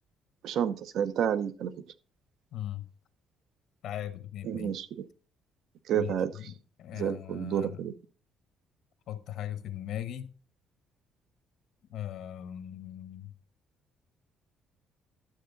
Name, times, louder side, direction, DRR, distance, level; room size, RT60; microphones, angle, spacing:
voice 1, 0.4-1.7 4.4-5.0 5.9-6.3 7.0-7.9, right 9 dB, 60° right, 0.7 m, -30 dB
voice 2, 2.5-2.9 3.8-4.7 5.9-7.9 9.1-10.3 11.9-13.3, left 11 dB, 60° left, 0.9 m, -39 dB
12.0 x 7.5 x 3.9 m
cardioid pair, 170°, 0 cm